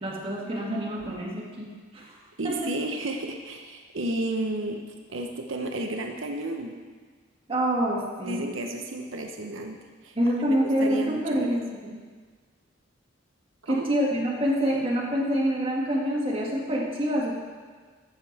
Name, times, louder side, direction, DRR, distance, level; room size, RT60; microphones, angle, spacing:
voice 1, 0.0-2.2 2.4-2.7 7.5-8.5 10.2-12.0 13.7-17.3, equal, 30° right, -4 dB, 1.9 m, -26 dB
voice 2, 2.4-4.8 5.1-6.7 8.2-9.8 10.0-11.6 13.7-13.9, right 1 dB, 85° right, 3 dB, 0.9 m, -32 dB
14.0 x 7.0 x 4.2 m, 1.5 s
head